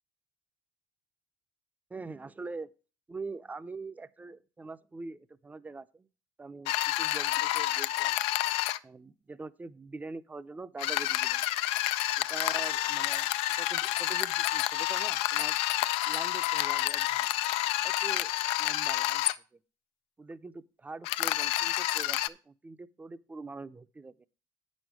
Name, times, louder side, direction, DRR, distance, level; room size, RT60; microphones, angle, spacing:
voice 1, 1.9-2.7 3.1-6.1 6.4-8.2 8.8-11.4 12.2-15.6 16.1-17.3 17.8-18.3 18.6-19.2 19.5-19.6 20.2-24.3, right 3 dB, 15° right, 0.6 m, -44 dB
sound 1, 6.7-8.8 10.8-19.3 21.0-22.3, left 15 dB, 80° left, 0.4 m, -29 dB
8.7 x 6.4 x 4.7 m
supercardioid pair, 95°, 10 cm